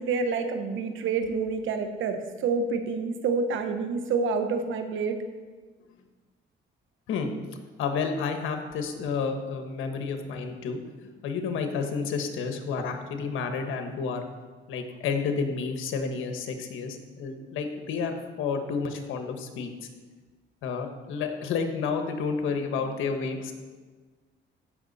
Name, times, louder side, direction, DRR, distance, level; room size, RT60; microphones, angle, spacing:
voice 1, 0.0-5.2, right 4 dB, 75° right, 7 dB, 1.1 m, -28 dB
voice 2, 7.8-10.8 11.2-14.2 14.7-19.9 20.6-23.5, left 5 dB, 85° left, 5 dB, 1.3 m, -30 dB
15.0 x 6.0 x 4.1 m, 1.4 s
cardioid pair, 90°, 20 cm